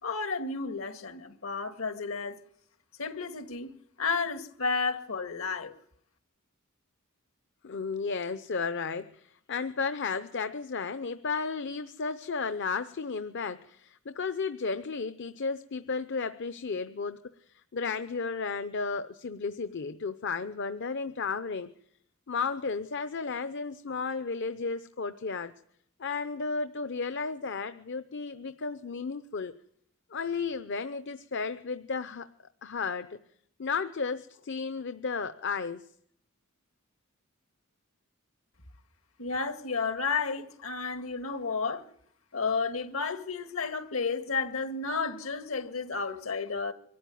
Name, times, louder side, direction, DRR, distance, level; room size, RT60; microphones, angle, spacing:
voice 1, 0.0-2.4 3.0-5.7 39.2-41.8 42.3-46.7, left 4 dB, 75° left, 1.9 m, -32 dB
voice 2, 7.6-17.2 17.7-21.7 22.3-25.5 26.0-29.5 30.1-32.3 32.6-33.2 33.6-35.8, left 4 dB, 60° left, 0.7 m, -33 dB
24.0 x 13.0 x 9.4 m
head